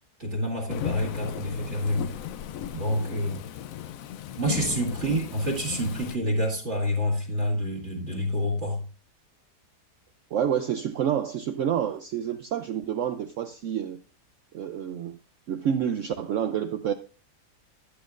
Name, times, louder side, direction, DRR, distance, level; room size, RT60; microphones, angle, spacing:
voice 1, 0.2-2.1 2.7-3.4 4.4-8.9, equal, 45° right, 1 dB, 2.3 m, -28 dB
Thunderstorm / Rain, 0.7-6.2, left 10 dB, 70° left, 0.8 m, -36 dB
voice 2, 10.3-14.0 14.5-15.2 15.5-16.9, right 9 dB, 70° right, 9 dB, 0.7 m, -28 dB
13.0 x 8.3 x 2.5 m, 0.38 s
omnidirectional pair, 1.8 m